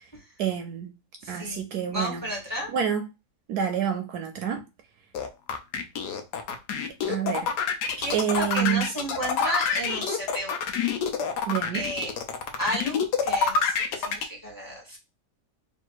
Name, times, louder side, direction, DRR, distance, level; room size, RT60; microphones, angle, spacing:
voice 1, 0.4-0.9 1.3-2.2 2.7-3.1 3.5-4.6 7.1-7.5 8.1-8.8 11.5-11.8, right 8 dB, 75° right, 1.1 m, -27 dB
voice 2, 1.2-1.6 1.9-2.7 8.0-10.6 11.7-12.1 12.6-15.0, equal, 15° left, 1.2 m, -33 dB
sound 1, 5.1-14.2, left 6 dB, 75° left, 1.2 m, -27 dB
3.4 x 2.5 x 4.5 m
omnidirectional pair, 1.8 m